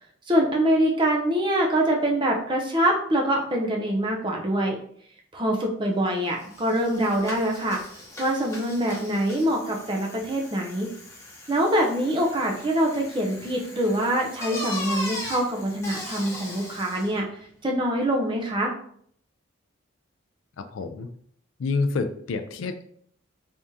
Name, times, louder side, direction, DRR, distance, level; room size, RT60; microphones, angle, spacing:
voice 1, 0.3-4.8 5.3-7.8 8.2-10.9 11.5-17.3 17.6-18.7, right 1 dB, 25° right, 0 dB, 0.6 m, -24 dB
Bicycle, 6.1-6.2 6.4-17.2, left 1 dB, 15° left, 0.9 m, -39 dB
voice 2, 20.7-21.1 21.6-22.8, left 4 dB, 80° left, 7 dB, 0.4 m, -28 dB
3.5 x 3.4 x 2.7 m, 0.63 s
head